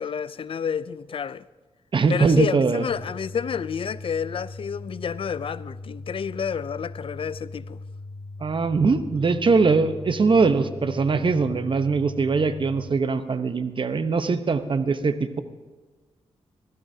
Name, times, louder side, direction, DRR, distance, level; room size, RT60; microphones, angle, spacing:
voice 1, 0.0-1.4 2.1-7.8, left 7 dB, 55° left, 0.4 m, -29 dB
voice 2, 1.9-2.8 8.4-15.4, right 4 dB, 45° right, 1.0 m, -22 dB
sound 1, 2.9-12.9, left 2 dB, 85° left, 1.1 m, -39 dB
22.5 x 15.0 x 2.8 m
cardioid pair, 60°, 11 cm